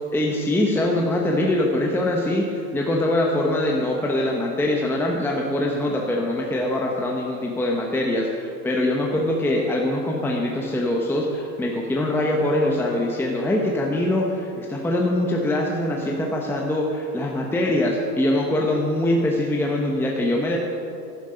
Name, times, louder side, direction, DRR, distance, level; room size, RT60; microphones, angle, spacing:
voice 1, 0.1-20.6, left 1 dB, 5° left, -1 dB, 1.0 m, -23 dB
11.5 x 10.5 x 5.1 m, 2.6 s
hypercardioid pair, 115°, 48 cm